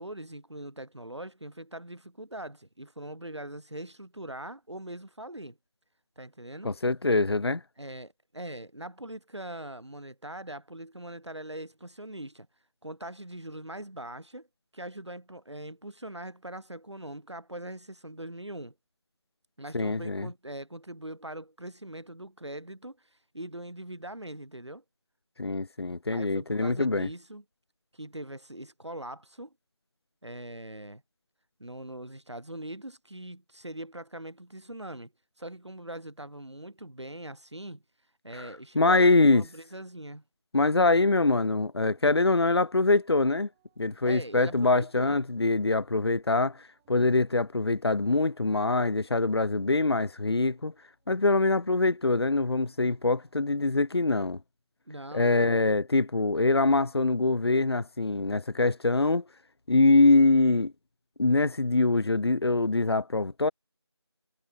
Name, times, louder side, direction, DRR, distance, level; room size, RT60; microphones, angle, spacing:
voice 1, 0.0-5.6 6.2-6.7 7.8-12.5 12.8-14.5 14.7-18.7 19.6-24.8 26.1-27.4 27.9-29.5 30.2-31.0 31.6-35.1 35.4-37.8 38.2-40.2 44.0-45.2 54.9-55.6, right 1 dB, 85° right, 5.2 m, -41 dB
voice 2, 6.6-7.6 19.7-20.3 25.4-27.1 38.3-39.5 40.5-43.5 43.8-50.7 51.1-54.4 55.1-59.2 59.7-60.7 61.2-63.5, left 3 dB, 65° left, 0.6 m, -24 dB
sound 1, 40.9-53.8, right 23 dB, 5° right, 3.4 m, -72 dB
figure-of-eight pair, 175°, 14 cm